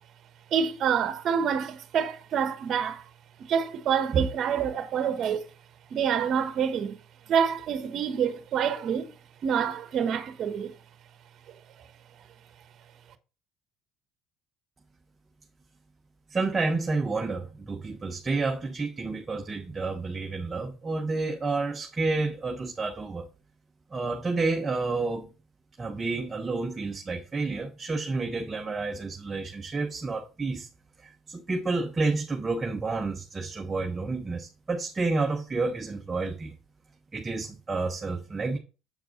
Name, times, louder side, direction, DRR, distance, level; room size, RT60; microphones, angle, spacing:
voice 1, 0.5-3.0 3.4-5.5 5.9-7.0 7.3-9.1 9.4-10.8, right 7 dB, 55° right, 1.3 m, -27 dB
voice 2, 16.3-23.3 23.9-25.3 25.8-30.7 31.0-36.5 37.1-38.6, right 3 dB, 25° right, 1.2 m, -30 dB
8.1 x 4.7 x 4.0 m
supercardioid pair, 85°, 0 cm